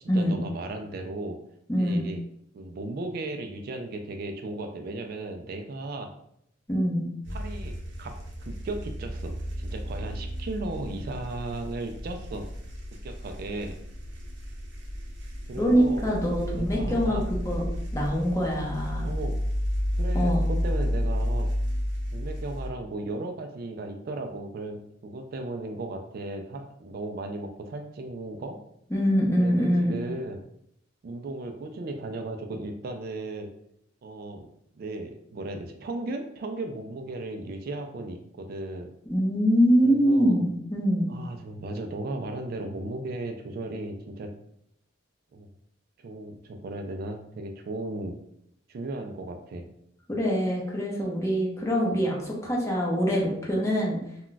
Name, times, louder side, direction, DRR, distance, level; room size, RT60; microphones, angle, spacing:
voice 1, 0.1-1.4 1.8-2.2 2.5-6.1 7.3-8.1 8.4-12.5 13.0-13.8 15.5-16.1 16.5-17.2 19.0-19.4 20.0-21.5 22.1-28.6 29.4-30.4 31.0-33.5 34.0-34.5 34.8-38.9 39.8-40.4 41.1-44.3 45.3-45.5 46.0-48.2 48.7-49.7, right 2 dB, 50° right, 5 dB, 0.3 m, -36 dB
voice 2, 1.7-2.0 6.7-7.0 15.6-19.1 20.1-20.4 28.9-29.9 39.1-41.1 50.1-54.0, equal, 15° left, -3 dB, 0.7 m, -24 dB
sound 1, 7.2-22.7, equal, 80° right, 0.7 m, -32 dB
2.3 x 2.2 x 3.8 m, 0.74 s
head